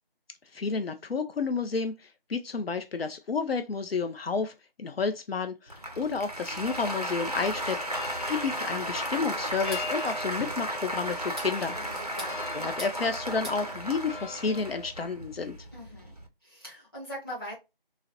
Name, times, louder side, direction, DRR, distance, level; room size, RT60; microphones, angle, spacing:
voice 1, 0.5-7.8 8.3-12.2 12.5-15.6, left 4 dB, 85° left, 0.5 m, -31 dB
Applause, 5.7-16.3, equal, 40° right, 0.4 m, -35 dB
sound 1, 6.7-14.9, left 1 dB, 60° left, 0.8 m, -43 dB
sound 2, 9.5-9.9 11.1-11.5 12.0-13.0 13.2-13.6, equal, ahead, 0.6 m, -42 dB
voice 2, 11.7-12.4 15.7-16.1 16.4-17.5, equal, 25° left, 1.4 m, -41 dB
3.8 x 2.0 x 2.7 m
figure-of-eight pair, 175°, 29 cm